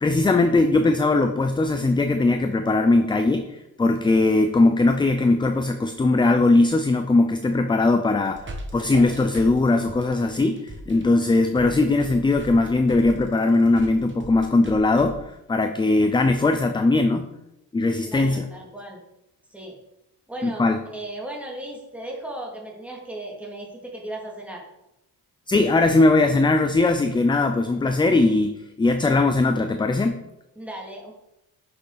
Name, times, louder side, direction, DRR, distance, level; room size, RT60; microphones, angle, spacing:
voice 1, 0.0-17.3 17.7-18.4 20.4-20.8 25.5-30.2, left 2 dB, 10° left, 7 dB, 0.4 m, -20 dB
sound 1, 8.0-15.1, right 1 dB, 30° right, 1.6 m, -39 dB
voice 2, 18.0-19.0 19.5-19.7 20.3-24.6 30.6-31.1, right 1 dB, 5° right, -1 dB, 2.4 m, -36 dB
10.0 x 6.5 x 4.0 m, 0.88 s
cardioid pair, 130°, 38 cm